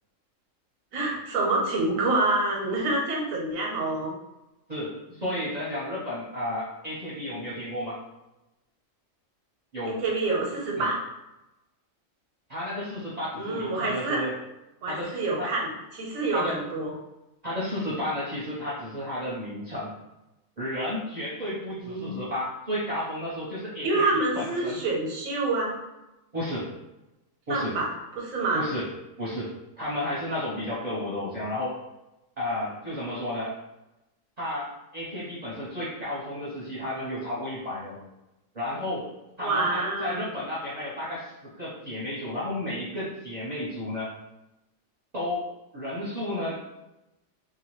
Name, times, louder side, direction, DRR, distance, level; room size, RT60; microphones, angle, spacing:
voice 1, 0.9-4.1 9.9-11.0 13.3-14.2 14.8-15.7 15.9-16.9 21.8-22.2 23.8-25.8 27.5-27.9 28.1-28.6 39.4-40.3, right 2 dB, 85° right, -2 dB, 1.1 m, -27 dB
voice 2, 4.7-8.0 9.7-10.0 10.8-10.9 12.5-14.4 14.9-15.5 16.3-16.6 17.4-19.9 20.6-24.0 24.3-24.8 26.3-26.7 27.5-27.8 28.5-28.9 29.2-31.8 32.4-33.6 34.4-38.0 38.5-39.1 39.4-44.2 45.1-46.6, left 1 dB, 40° right, -9 dB, 0.7 m, -32 dB
2.9 x 2.2 x 2.9 m, 0.97 s
omnidirectional pair, 1.4 m